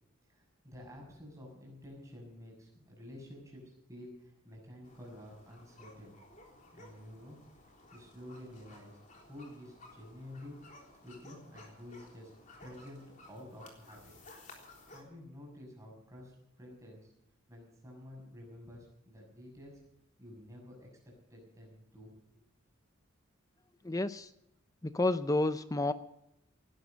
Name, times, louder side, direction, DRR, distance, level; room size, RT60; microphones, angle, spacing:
voice 1, 0.3-6.2 6.7-7.4 7.9-9.0 9.3-10.6 11.0-12.3 12.6-14.1 14.9-17.1 17.5-19.8 20.2-22.1, left 1 dB, 15° right, -1 dB, 6.6 m, -50 dB
sound 1, 4.8-15.0, left 2 dB, 35° left, 3.6 m, -56 dB
voice 2, 23.8-24.3 24.8-25.9, left 2 dB, 15° left, 12 dB, 0.5 m, -30 dB
18.5 x 12.0 x 6.5 m, 0.80 s
head